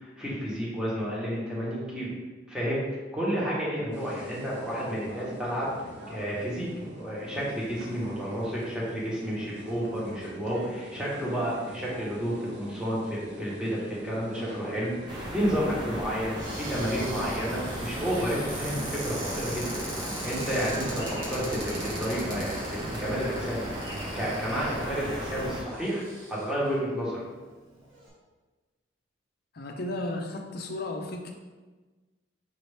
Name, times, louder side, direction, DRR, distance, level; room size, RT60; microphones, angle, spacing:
voice 1, 0.0-2.1 2.5-2.8 3.1-5.7 6.1-6.7 7.0-16.3 16.7-19.8 20.2-21.7 22.0-23.6 24.1-26.0 26.3-27.2, equal, 5° right, -7 dB, 1.1 m, -31 dB
sound 1, 3.8-23.3, equal, 60° right, 0.7 m, -45 dB
sound 2, 15.1-25.6, equal, 25° right, 0.8 m, -36 dB
Cupboard open or close, 16.4-26.7 27.4-27.5 27.7-28.1, right 1 dB, 80° right, 1.4 m, -41 dB
voice 2, 29.5-31.3, left 2 dB, 55° left, 3 dB, 0.5 m, -34 dB
5.3 x 2.8 x 3.4 m, 1.3 s
head